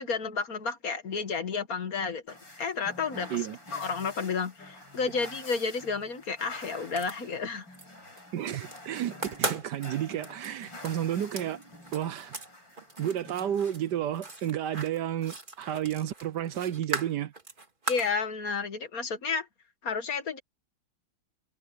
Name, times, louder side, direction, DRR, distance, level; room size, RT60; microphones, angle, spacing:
voice 1, 0.0-2.2 2.6-3.4 3.7-7.7 17.9-19.5 19.8-20.4, left 5 dB, 50° left, 1.9 m, -31 dB
sound 1, 2.3-14.5, left 1 dB, 85° left, 8.8 m, -48 dB
sound 2, 6.9-7.9 8.2-8.8 9.1-12.5 12.8-18.2, right 2 dB, 25° right, 2.3 m, -38 dB
voice 2, 8.3-11.6 11.9-12.3 13.0-17.3, right 10 dB, 70° right, 1.3 m, -31 dB
omnidirectional pair, 2.0 m